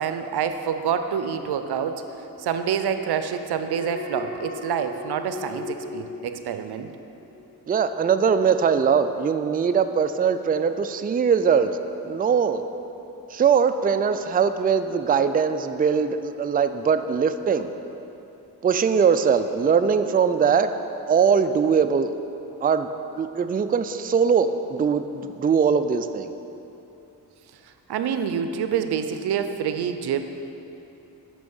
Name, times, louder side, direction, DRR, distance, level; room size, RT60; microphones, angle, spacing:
voice 1, 0.0-2.0 2.4-6.9 27.9-30.2, right 7 dB, 80° right, 9 dB, 0.6 m, -27 dB
Alarm, 3.6-7.0 7.3-7.7, left 3 dB, 20° left, 1.8 m, -37 dB
voice 2, 7.7-11.8 12.0-12.6 13.3-17.7 18.6-20.7 21.1-22.2 22.6-22.9 23.2-26.3, right 6 dB, 25° right, 9 dB, 0.4 m, -21 dB
6.2 x 6.1 x 7.1 m, 3.0 s
cardioid pair, 55°, 39 cm